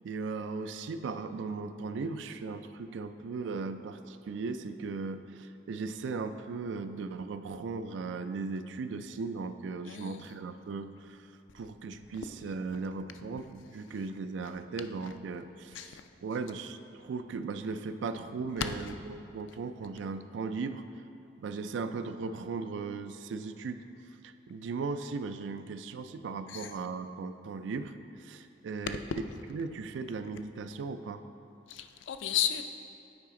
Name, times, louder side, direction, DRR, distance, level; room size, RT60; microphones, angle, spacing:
voice 1, 0.0-11.3 11.5-20.8 21.4-23.8 24.2-27.9 28.2-29.0 29.5-31.2, right 4 dB, 85° right, 10 dB, 0.3 m, -37 dB
voice 2, 9.9-10.2 15.7-16.0 18.6-18.7 26.5-26.7 31.7-32.6, left 10 dB, 90° left, 8 dB, 0.4 m, -33 dB
8.7 x 4.9 x 3.7 m, 2.8 s
head